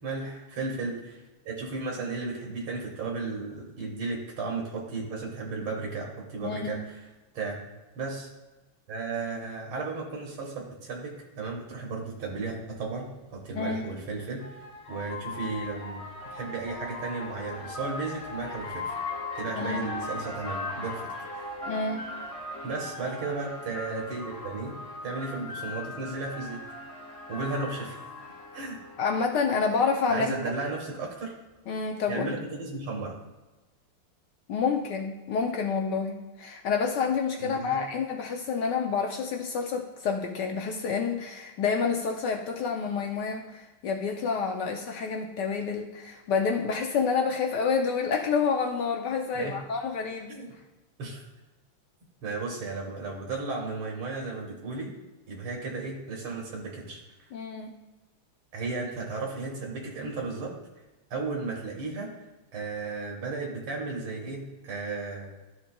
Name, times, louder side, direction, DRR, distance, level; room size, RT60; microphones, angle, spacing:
voice 1, 0.0-1.2 1.5-7.0 7.3-7.6 8.0-8.3 8.9-14.4 14.9-16.0 16.3-19.0 19.3-21.1 21.3-21.5 22.6-26.6 27.3-28.0 28.5-28.8 30.1-31.3 32.1-33.2 37.4-37.8 49.4-49.6 50.3-50.5 51.0-51.2 52.2-54.9 55.3-57.3 58.5-60.5 61.1-62.1 62.5-65.3, right 3 dB, 80° right, -2 dB, 2.2 m, -34 dB
voice 2, 6.4-6.8 13.5-13.8 19.5-19.9 21.7-22.0 29.0-30.4 31.7-32.3 34.5-50.4 57.3-57.7, left 5 dB, 75° left, 2 dB, 1.0 m, -28 dB
sound 1, 12.2-12.3 13.7-29.3, left 2 dB, 30° left, 0.7 m, -38 dB
13.0 x 5.5 x 2.3 m, 1.1 s
omnidirectional pair, 2.4 m